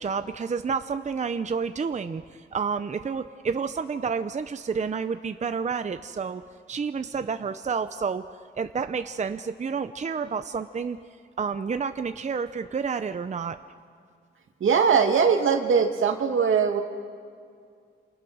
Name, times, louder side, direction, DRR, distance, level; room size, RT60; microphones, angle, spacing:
voice 1, 0.0-6.4 6.7-8.2 8.5-11.0 11.4-13.6, right 5 dB, 35° right, 10 dB, 0.7 m, -30 dB
voice 2, 14.6-16.8, right 6 dB, 80° right, 4 dB, 2.3 m, -21 dB
28.0 x 28.0 x 6.3 m, 2.2 s
wide cardioid pair, 120°, 20 cm